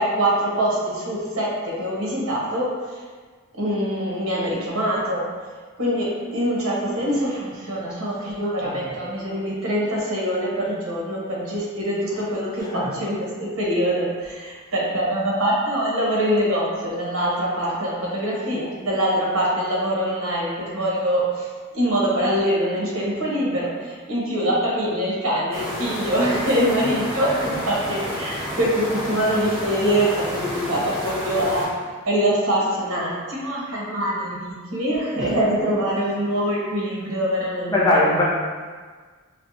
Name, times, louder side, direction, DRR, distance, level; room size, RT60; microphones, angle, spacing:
voice 1, 0.0-2.7 3.6-5.2 5.8-21.5 21.7-31.6 32.1-38.0, equal, 80° right, -5 dB, 0.9 m, -24 dB
voice 2, 8.6-9.0 12.6-12.9 35.2-35.3 35.6-35.7 37.7-38.2, left 1 dB, 20° left, -6 dB, 0.5 m, -21 dB
sound 1, 25.5-31.7, equal, 10° right, 1.2 m, -30 dB
4.4 x 2.0 x 2.6 m, 1.5 s
head